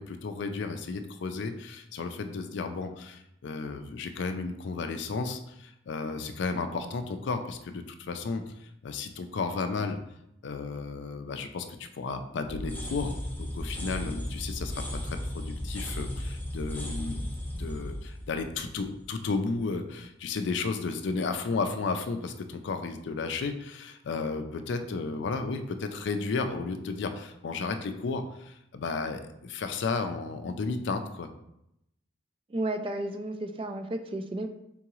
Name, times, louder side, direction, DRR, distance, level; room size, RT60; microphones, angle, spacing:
voice 1, 0.0-8.5 8.8-10.0 10.4-17.3 17.5-31.3, left 4 dB, 65° left, 7 dB, 0.4 m, -33 dB
sound 1, 12.5-19.3, left 1 dB, 10° left, 0.8 m, -35 dB
voice 2, 32.5-34.5, right 1 dB, 30° right, 6 dB, 0.3 m, -32 dB
3.8 x 3.6 x 3.0 m, 0.81 s
head